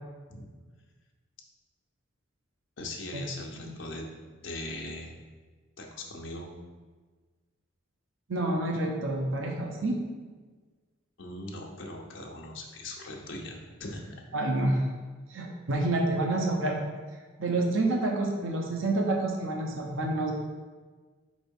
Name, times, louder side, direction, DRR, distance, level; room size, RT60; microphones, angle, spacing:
voice 1, 2.8-4.0 4.4-5.1 5.8-6.5 11.2-14.1, left 1 dB, 65° left, 0 dB, 0.9 m, -40 dB
voice 2, 8.3-10.0 14.3-14.8 15.3-16.9 17.4-20.3, right 2 dB, 80° right, 1 dB, 0.8 m, -28 dB
4.6 x 4.2 x 5.3 m, 1.4 s
head